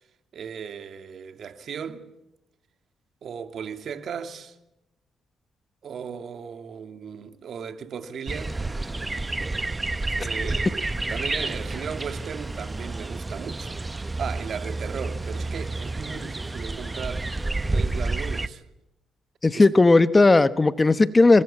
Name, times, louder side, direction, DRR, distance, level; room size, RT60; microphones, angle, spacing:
voice 1, 0.3-2.1 3.2-4.6 5.8-8.6 10.1-13.8 14.2-17.3 17.7-18.6 19.5-19.7, right 7 dB, 60° right, 2.6 m, -36 dB
sound 1, 8.3-18.5, right 2 dB, 20° right, 1.0 m, -30 dB
voice 2, 19.4-21.4, left 3 dB, 20° left, 1.0 m, -16 dB
26.5 x 19.5 x 8.7 m
cardioid pair, 90°, 0 cm